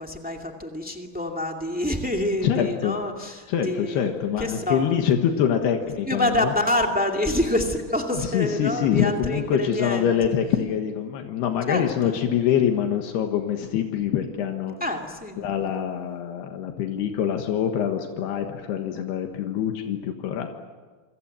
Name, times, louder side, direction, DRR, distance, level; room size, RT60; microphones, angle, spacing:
voice 1, 0.0-4.1 4.4-5.0 6.1-10.3 11.7-12.2 14.8-15.5, left 1 dB, 5° right, 2 dB, 0.6 m, -27 dB
voice 2, 2.4-3.0 3.5-6.5 8.1-14.8 15.4-20.5, left 9 dB, 80° left, 4 dB, 3.5 m, -25 dB
27.0 x 26.0 x 7.7 m, 1.4 s
omnidirectional pair, 4.7 m